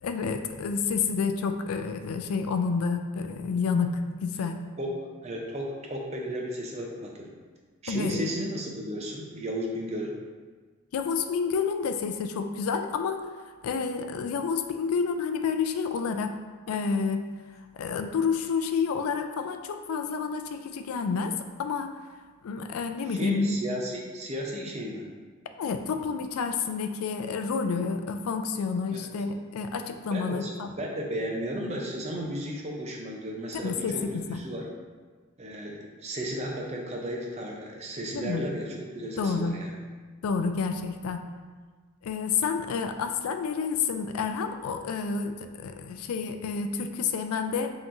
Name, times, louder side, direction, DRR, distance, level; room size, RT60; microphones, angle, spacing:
voice 1, 0.0-4.6 7.9-8.2 10.9-13.2 13.6-16.3 16.7-17.3 17.7-21.3 21.6-21.9 22.4-23.6 25.6-30.7 33.5-34.4 38.1-38.5 39.2-39.5 40.2-41.2 42.0-47.7, left 5 dB, 85° left, 7 dB, 0.3 m, -29 dB
voice 2, 5.2-7.3 7.8-10.1 23.1-25.0 28.9-29.1 30.1-30.5 30.8-34.0 34.3-34.6 35.4-39.7, equal, 30° right, -1 dB, 0.6 m, -34 dB
5.5 x 3.0 x 2.6 m, 1.4 s
head